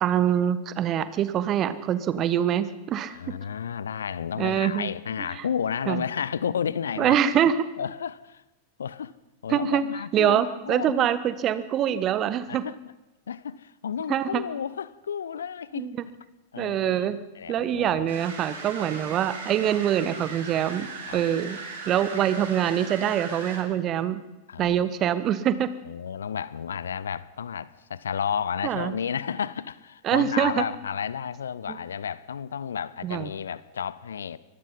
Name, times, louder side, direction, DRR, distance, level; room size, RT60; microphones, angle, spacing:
voice 1, 0.0-3.2 4.4-4.9 5.3-5.4 5.9-6.0 7.0-7.5 9.5-9.8 10.1-12.6 14.1-14.4 15.7-15.9 16.6-17.2 17.5-20.9 21.1-24.2 24.6-25.7 28.6-28.9 30.0-30.6 31.7-31.8 33.0-33.3, right 10 dB, 30° right, 1.5 m, -24 dB
voice 2, 3.1-7.2 7.8-8.4 8.8-9.1 9.4-11.1 12.5-12.8 13.3-15.9 16.5-18.2 21.1-21.2 24.5-24.8 25.8-34.4, left 7 dB, 70° left, 0.8 m, -32 dB
sound 1, 18.1-23.6, right 4 dB, 60° right, 5.3 m, -38 dB
24.5 x 19.5 x 5.6 m
figure-of-eight pair, 90°, 0 cm